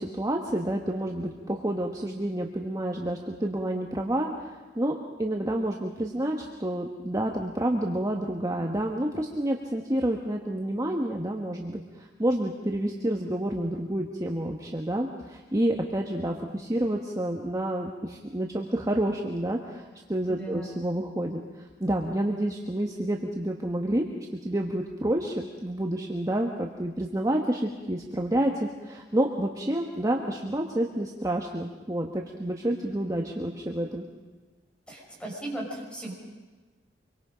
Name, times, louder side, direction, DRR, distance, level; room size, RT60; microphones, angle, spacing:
voice 1, 0.0-24.1 24.4-34.0, right 1 dB, 20° right, 1 dB, 1.3 m, -29 dB
voice 2, 20.3-20.6 34.9-36.1, right 1 dB, 5° left, -2 dB, 6.1 m, -36 dB
25.5 x 23.5 x 5.2 m, 1.3 s
head